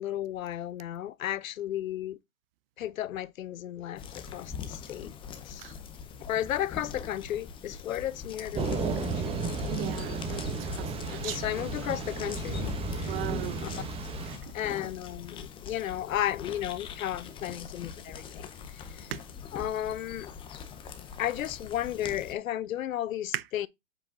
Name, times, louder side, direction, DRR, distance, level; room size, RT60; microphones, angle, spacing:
voice 1, 0.0-2.2 2.8-5.1 5.5-5.7 6.2-9.3 11.1-12.7 13.6-13.7 14.5-18.5 19.5-20.3 21.2-23.7, left 12 dB, 80° left, 0.8 m, -34 dB
sound 1, 4.0-22.3, left 7 dB, 15° left, 0.7 m, -43 dB
Thunder / Rain, 8.6-14.4, right 3 dB, 15° right, 1.1 m, -33 dB
voice 2, 9.7-11.4 13.0-13.7 14.2-14.4 19.1-19.2 23.3-23.4, right 14 dB, 45° right, 0.7 m, -38 dB
7.9 x 4.9 x 3.8 m
hypercardioid pair, 145°, 40 cm